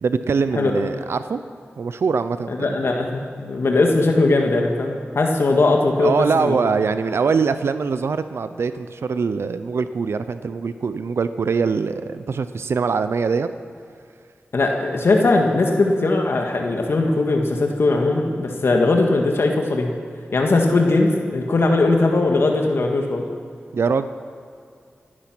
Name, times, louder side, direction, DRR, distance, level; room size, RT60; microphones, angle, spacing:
voice 1, 0.0-1.4 1.8-2.8 6.0-13.5 23.7-24.1, right 5 dB, 80° right, 11 dB, 0.6 m, -23 dB
voice 2, 2.5-6.6 14.5-19.9 20.3-23.2, left 2 dB, 70° left, 2 dB, 1.8 m, -19 dB
17.5 x 11.0 x 6.1 m, 2.4 s
cardioid pair, 50°, 4 cm